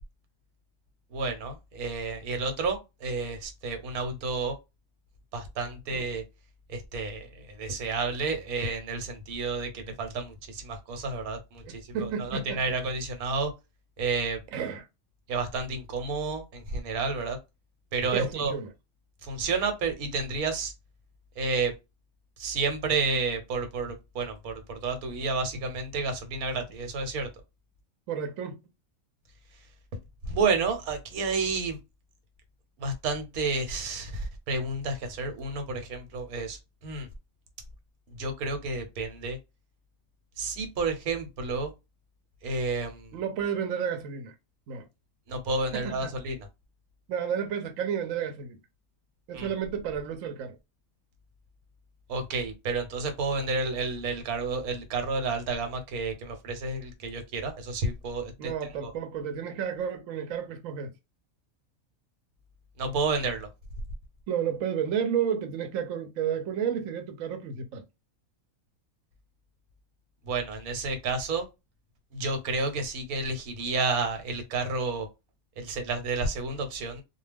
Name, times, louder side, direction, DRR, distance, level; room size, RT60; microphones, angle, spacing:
voice 1, 1.1-4.5 5.3-6.2 6.7-13.5 14.0-14.4 15.3-17.4 17.9-18.5 19.2-20.7 21.4-21.7 22.4-27.3 30.2-31.8 32.8-37.1 38.2-39.4 40.4-41.7 42.4-43.1 45.3-46.4 49.3-49.5 52.1-58.5 58.8-58.9 62.8-63.5 70.3-71.5 72.1-75.1 75.6-77.0, right 3 dB, 90° right, 1.2 m, -30 dB
voice 2, 11.6-12.6 14.5-14.9 18.1-18.7 28.1-28.6 43.1-44.3 44.7-44.9 45.7-46.1 47.1-48.6 49.3-50.6 58.4-60.9 64.3-67.8, right 8 dB, 70° right, 1.0 m, -31 dB
2.3 x 2.3 x 3.3 m
omnidirectional pair, 1.5 m